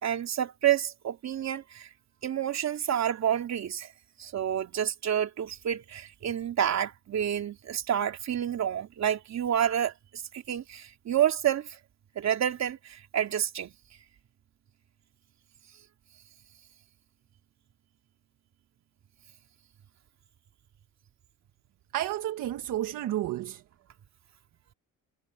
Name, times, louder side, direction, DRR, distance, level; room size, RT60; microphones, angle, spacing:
voice 1, 0.0-1.9 2.2-3.9 4.2-11.8 12.2-13.7, right 10 dB, 50° right, 3.3 m, -29 dB
voice 2, 21.9-23.6, right 13 dB, 65° right, 1.3 m, -31 dB
cardioid pair, 110°, 34 cm